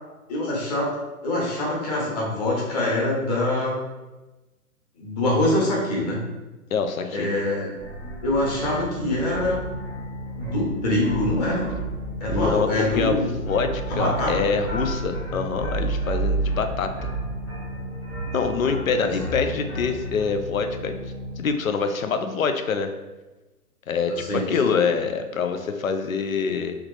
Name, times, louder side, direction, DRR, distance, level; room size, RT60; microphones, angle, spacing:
voice 1, 0.3-0.9 1.2-3.8 5.0-6.2 7.1-7.7 8.2-9.6 10.3-11.7 12.2-13.3 13.9-14.3 18.9-19.1 24.2-24.8, left 1 dB, 25° left, -4 dB, 1.3 m, -24 dB
voice 2, 6.7-7.3 12.3-17.1 18.3-21.0 21.4-22.9 23.9-26.8, left 5 dB, 60° left, 7 dB, 0.6 m, -25 dB
sound 1, 7.8-20.2, right 3 dB, 10° left, 0.8 m, -32 dB
sound 2, 8.3-21.4, left 1 dB, 40° right, 0.6 m, -36 dB
3.5 x 3.2 x 4.8 m, 1.1 s
figure-of-eight pair, 135°, 46 cm